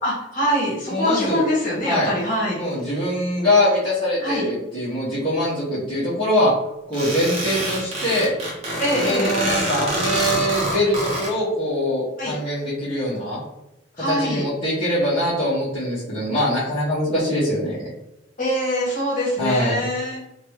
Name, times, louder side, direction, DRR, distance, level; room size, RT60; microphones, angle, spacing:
voice 1, 0.0-2.6 4.2-4.4 8.8-9.3 12.2-12.3 14.0-14.4 18.4-20.3, equal, 45° left, -6 dB, 1.3 m, -23 dB
voice 2, 0.8-1.4 1.8-2.1 2.5-6.5 6.9-8.3 8.9-13.4 14.0-17.9 19.4-19.8, left 1 dB, 30° left, -12 dB, 1.0 m, -23 dB
sound 1, 6.9-11.3, right 1 dB, 35° right, 0.9 m, -26 dB
2.8 x 2.3 x 3.1 m, 0.92 s
head